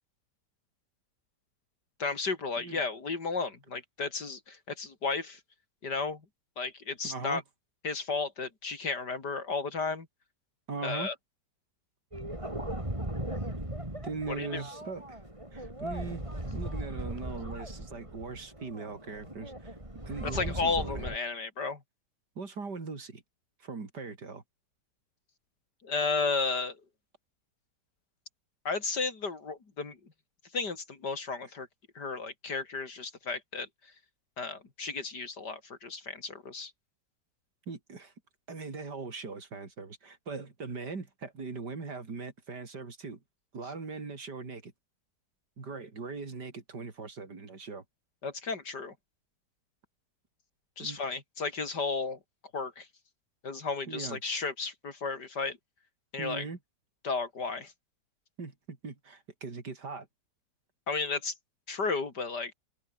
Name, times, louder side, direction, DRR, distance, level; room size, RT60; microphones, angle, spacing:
voice 1, 2.0-5.4 5.8-6.2 6.6-7.4 7.8-10.1 10.8-11.1 14.4-14.6 20.2-21.8 25.8-26.8 28.7-30.0 30.5-31.7 32.0-33.7 34.4-36.7 48.2-48.9 50.8-52.2 52.5-52.9 53.4-55.6 56.1-56.5 57.0-57.7 60.9-61.3 61.7-62.5, left 4 dB, 70° left, 3.9 m, -33 dB
voice 2, 7.0-7.4 10.7-11.1 14.0-15.2 15.5-16.2 16.5-19.8 20.1-21.1 22.4-23.2 23.6-24.4 37.7-38.1 38.5-43.2 43.5-44.7 45.6-47.8 50.8-51.0 53.9-54.2 56.2-56.6 58.4-60.1, right 4 dB, 70° right, 3.8 m, -40 dB
sound 1, 12.1-21.2, right 1 dB, 15° right, 5.7 m, -38 dB
omnidirectional pair, 1.9 m